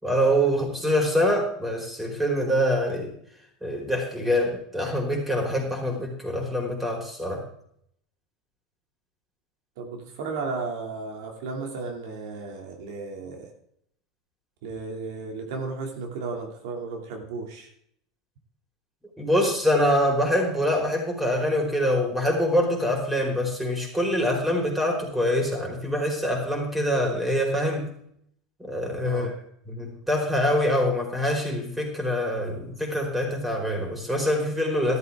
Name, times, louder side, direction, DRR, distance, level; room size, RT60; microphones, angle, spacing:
voice 1, 0.0-3.1 3.6-7.4 19.2-27.9 28.6-29.3 29.7-35.0, equal, 5° right, 1 dB, 4.9 m, -25 dB
voice 2, 9.8-13.5 14.6-17.7 29.0-29.3, right 4 dB, 70° right, 2 dB, 2.7 m, -34 dB
13.0 x 13.0 x 3.7 m, 0.70 s
hypercardioid pair, 100°, 2 cm